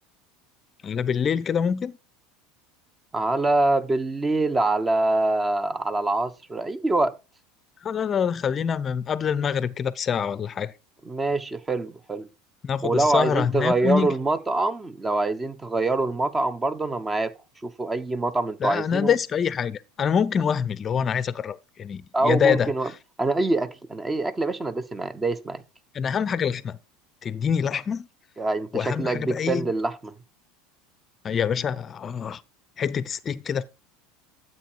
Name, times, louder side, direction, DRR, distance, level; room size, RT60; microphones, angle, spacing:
voice 1, 0.8-1.9 7.8-10.7 12.6-14.1 18.6-22.7 25.9-26.8 27.2-28.1 28.7-29.7 31.2-32.4 32.8-33.6, left 7 dB, 35° left, 0.7 m, -25 dB
voice 2, 3.1-7.2 11.0-12.3 12.8-17.3 17.6-19.1 22.1-22.9 23.2-25.6 28.4-30.1, right 2 dB, 20° right, 1.2 m, -25 dB
13.0 x 7.7 x 4.6 m
hypercardioid pair, 85°, 0 cm